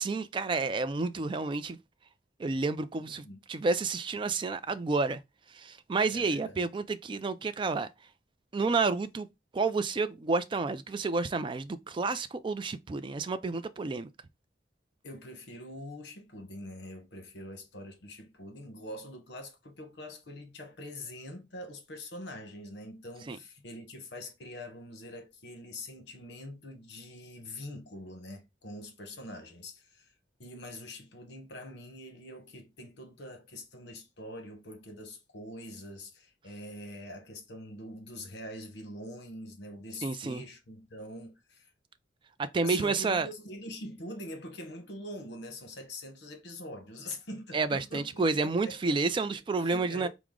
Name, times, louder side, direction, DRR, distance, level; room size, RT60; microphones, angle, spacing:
voice 1, 0.0-1.8 2.4-5.2 5.5-7.9 8.5-9.3 9.5-14.1 23.3-23.4 40.0-40.4 42.4-43.3 47.5-50.1, right 3 dB, 25° right, 0.3 m, -30 dB
voice 2, 3.0-3.4 6.1-6.6 15.0-30.1 30.4-41.7 42.6-49.0 49.6-50.1, left 1 dB, 70° left, 1.0 m, -44 dB
4.7 x 2.0 x 3.7 m
head